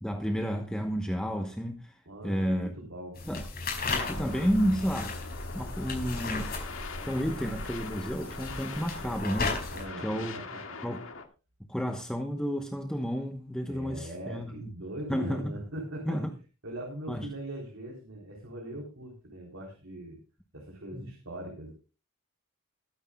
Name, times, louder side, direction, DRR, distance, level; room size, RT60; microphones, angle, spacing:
voice 1, 0.0-2.0 2.2-2.7 3.3-3.4 4.1-5.2 5.5-6.5 7.0-9.6 10.0-10.4 10.8-11.0 11.7-14.7 15.1-15.4 16.0-16.3 17.1-17.3 20.9-21.1, equal, 5° left, 1.0 m, -31 dB
voice 2, 2.1-3.3 9.7-10.8 13.7-16.2 16.6-20.2 20.5-21.7, right 1 dB, 65° right, 3.8 m, -41 dB
sound 1, 3.2-9.9, left 3 dB, 45° left, 5.3 m, -35 dB
sound 2, 4.0-11.3, left 4 dB, 65° left, 2.0 m, -43 dB
22.0 x 9.9 x 2.3 m
head